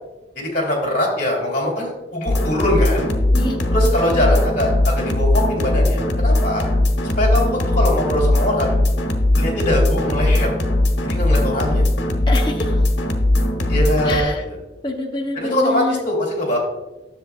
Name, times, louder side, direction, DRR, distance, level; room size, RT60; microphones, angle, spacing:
voice 1, 0.3-3.1 3.7-6.7 7.1-8.8 9.3-10.6 11.0-11.8 13.7-14.3 15.4-16.6, left 1 dB, 45° left, -1 dB, 2.7 m, -22 dB
sound 1, 2.3-14.2, left 1 dB, 80° left, 1.0 m, -19 dB
voice 2, 3.3-4.3 12.3-12.8 14.1-14.4 14.8-16.0, left 2 dB, 25° left, 1 dB, 0.8 m, -26 dB
10.5 x 7.2 x 2.4 m, 1.0 s
head